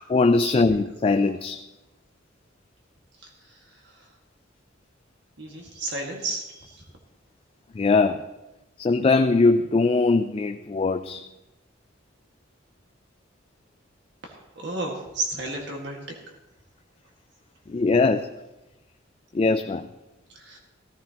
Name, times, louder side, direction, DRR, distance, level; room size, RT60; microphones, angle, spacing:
voice 1, 0.1-1.6 7.8-8.2 8.8-11.2 17.7-18.3 19.3-19.9, left 3 dB, 30° left, 8 dB, 0.3 m, -21 dB
voice 2, 0.9-1.3 3.2-4.1 5.4-6.8 14.2-16.2 20.3-20.6, right 2 dB, 60° right, 1 dB, 1.8 m, -34 dB
15.5 x 14.0 x 2.9 m, 1.0 s
head